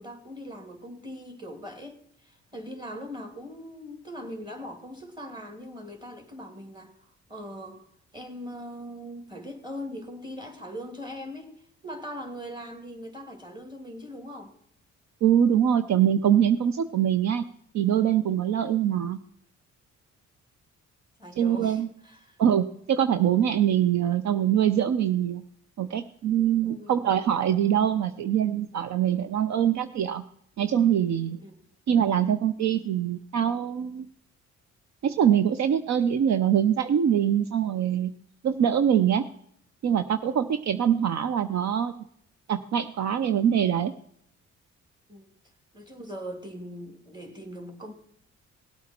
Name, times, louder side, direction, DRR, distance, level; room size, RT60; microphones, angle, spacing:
voice 1, 0.0-7.8 8.1-11.5 11.8-14.5 18.6-18.9 21.2-22.4 26.6-27.0 31.4-31.6 45.1-45.3 45.7-47.9, equal, 15° right, 5 dB, 2.8 m, -41 dB
voice 2, 15.2-17.4 17.7-19.2 21.4-21.9 22.4-25.4 25.8-30.2 30.6-31.4 31.9-34.1 35.0-38.1 38.4-39.3 39.8-41.9 42.5-43.9, right 9 dB, 65° right, 11 dB, 0.7 m, -23 dB
18.0 x 8.4 x 4.4 m, 0.69 s
cardioid pair, 90°, 30 cm